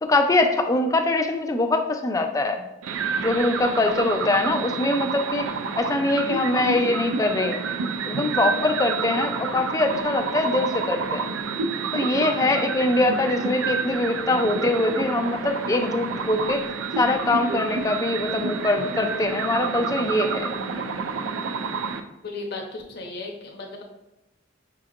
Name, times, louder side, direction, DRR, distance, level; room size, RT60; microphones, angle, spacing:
voice 1, 0.0-2.6 3.2-5.5 5.8-7.7 8.1-11.3 11.9-16.6 17.0-20.5, left 2 dB, 15° left, 5 dB, 0.3 m, -23 dB
sound 1, 2.8-22.0, right 5 dB, 80° right, 0.4 m, -29 dB
voice 2, 22.2-23.8, left 3 dB, 55° left, 0 dB, 0.8 m, -35 dB
5.9 x 2.9 x 2.4 m, 0.96 s
head